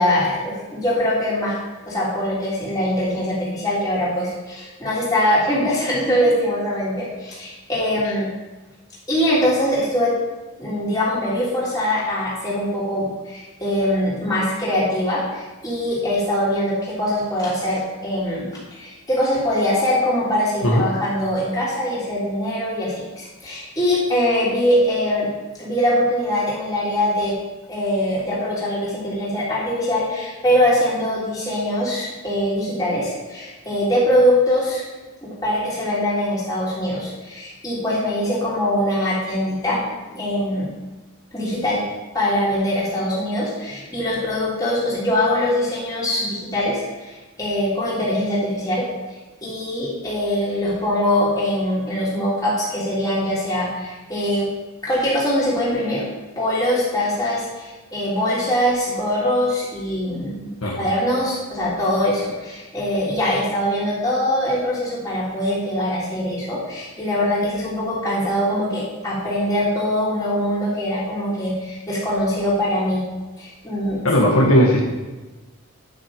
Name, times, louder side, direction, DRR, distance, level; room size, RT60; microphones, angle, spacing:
voice 1, 0.0-1.6 1.8-8.3 9.1-10.1 10.6-25.3 25.6-27.3 27.7-34.8 35.2-40.7 41.3-41.9 42.1-48.8 49.4-54.5 54.8-56.1 56.3-73.0 73.4-74.0, left 1 dB, 15° left, -8 dB, 3.4 m, -22 dB
voice 2, 74.0-74.8, equal, 70° left, -2 dB, 1.5 m, -16 dB
10.5 x 6.2 x 5.0 m, 1.2 s
head